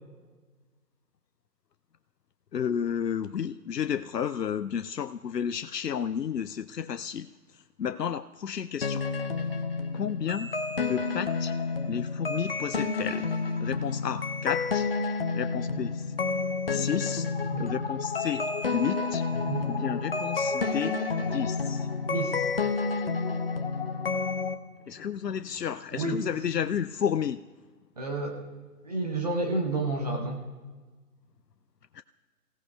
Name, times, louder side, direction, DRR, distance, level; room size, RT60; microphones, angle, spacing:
voice 1, 2.5-9.0 9.9-10.5 10.8-11.5 11.9-13.3 13.6-14.9 15.3-16.0 16.7-17.3 17.6-19.2 19.7-21.9 24.9-27.4 31.9-32.0, left 8 dB, 90° left, 12 dB, 0.6 m, -32 dB
sound 1, 8.8-24.5, left 4 dB, 40° left, 0.9 m, -30 dB
voice 2, 19.3-19.7 22.1-22.5 25.9-26.2 28.0-28.4 28.8-30.4, right 2 dB, 25° right, 0 dB, 1.0 m, -30 dB
27.0 x 16.5 x 2.3 m, 1.4 s
figure-of-eight pair, 150°, 47 cm